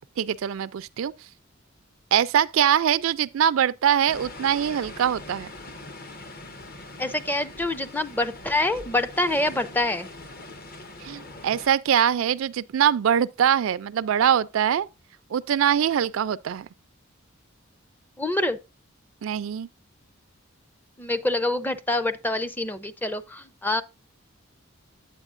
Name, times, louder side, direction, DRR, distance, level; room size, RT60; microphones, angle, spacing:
voice 1, 0.2-1.3 2.1-5.5 11.0-14.9 15.3-16.7 19.2-19.7, right 9 dB, 65° right, 0.3 m, -23 dB
sound 1, 4.1-11.7, left 2 dB, 45° left, 0.9 m, -42 dB
voice 2, 7.0-10.1 18.2-18.6 21.0-23.8, left 2 dB, 10° left, 0.5 m, -26 dB
9.0 x 7.8 x 2.5 m
head